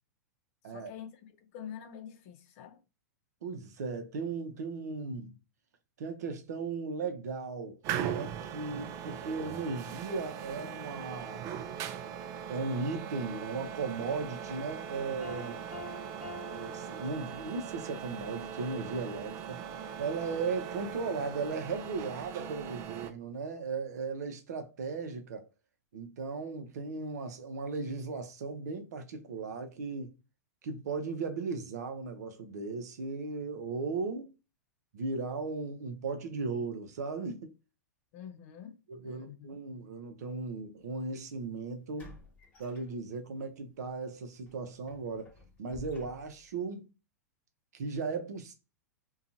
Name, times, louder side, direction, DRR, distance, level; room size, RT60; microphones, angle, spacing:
voice 1, 0.6-2.8 38.1-38.8 39.0-39.6, left 9 dB, 50° left, 0.6 m, -46 dB
voice 2, 3.4-5.4 6.0-11.5 12.5-15.6 16.5-19.6 20.0-25.4 25.9-30.1 30.6-34.3 34.9-37.5 38.9-42.2 42.6-46.9 47.7-48.5, right 4 dB, 70° right, 0.7 m, -37 dB
sound 1, 7.8-23.1, right 8 dB, 40° right, 0.4 m, -40 dB
Piano, 15.2-17.8, left 1 dB, 5° right, 0.9 m, -46 dB
sound 2, 40.9-41.0 42.0-43.4 43.8-44.0 44.5-46.6, left 2 dB, 15° left, 1.2 m, -53 dB
2.7 x 2.3 x 2.6 m
hypercardioid pair, 110°, 9 cm